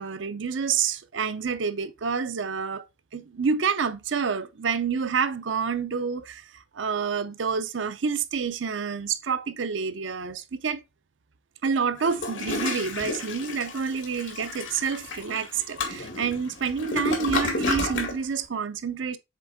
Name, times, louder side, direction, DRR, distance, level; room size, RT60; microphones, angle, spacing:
voice 1, 0.0-2.8 3.1-10.8 11.6-19.2, right 6 dB, 85° right, 0.6 m, -28 dB
Toilet flush, 12.0-18.2, left 2 dB, 85° left, 1.9 m, -31 dB
7.5 x 3.5 x 3.6 m
head